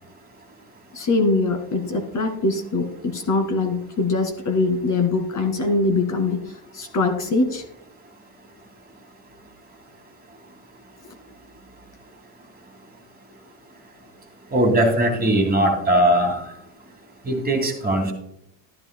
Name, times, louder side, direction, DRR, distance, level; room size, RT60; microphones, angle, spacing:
voice 1, 0.9-6.4 6.7-7.6, left 3 dB, 40° left, 5 dB, 2.1 m, -22 dB
voice 2, 14.5-16.4 17.2-18.1, right 1 dB, 20° right, 3 dB, 2.6 m, -19 dB
13.0 x 10.5 x 2.2 m, 0.78 s
supercardioid pair, 105°, 48 cm